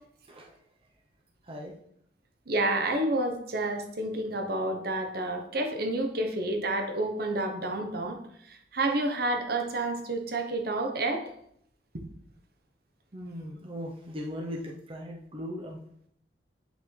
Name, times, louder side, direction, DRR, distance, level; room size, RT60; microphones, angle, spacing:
voice 1, 2.5-8.2 8.5-11.3, right 2 dB, 60° right, 5 dB, 1.0 m, -29 dB
voice 2, 13.1-15.8, equal, 30° right, -1 dB, 0.8 m, -38 dB
8.7 x 5.7 x 3.3 m, 0.71 s
head